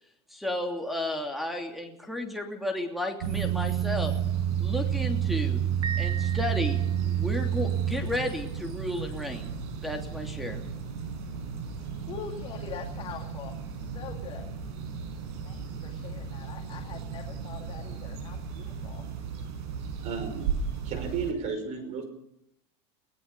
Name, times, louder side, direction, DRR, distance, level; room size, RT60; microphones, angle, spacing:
voice 1, 0.3-4.1 4.6-5.6 6.0-9.5 9.8-10.7, left 1 dB, ahead, 4 dB, 2.9 m, -33 dB
sound 1, 3.2-21.3, right 8 dB, 75° right, 5.4 m, -32 dB
Piano, 5.8-7.3, right 7 dB, 30° right, 0.7 m, -38 dB
voice 2, 11.2-14.5 15.4-19.1, left 7 dB, 40° left, 2 dB, 2.4 m, -44 dB
voice 3, 20.0-20.5 20.8-22.0, right 5 dB, 55° right, 9 dB, 5.5 m, -33 dB
24.5 x 18.0 x 6.8 m, 0.76 s
supercardioid pair, 120°, 14 cm